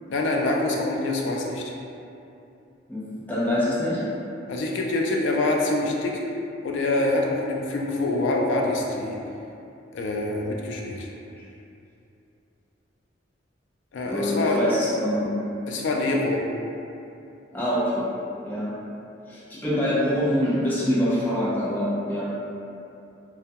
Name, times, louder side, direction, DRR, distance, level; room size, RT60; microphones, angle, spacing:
voice 1, 0.1-1.6 4.5-6.1 6.6-9.2 9.9-11.1 13.9-14.6 15.7-16.4, left 2 dB, 75° left, -1 dB, 0.3 m, -25 dB
voice 2, 2.9-4.0 14.1-15.3 17.5-18.1 18.4-18.7 19.2-22.3, equal, 10° left, -9 dB, 0.4 m, -25 dB
2.3 x 2.1 x 2.7 m, 2.7 s
head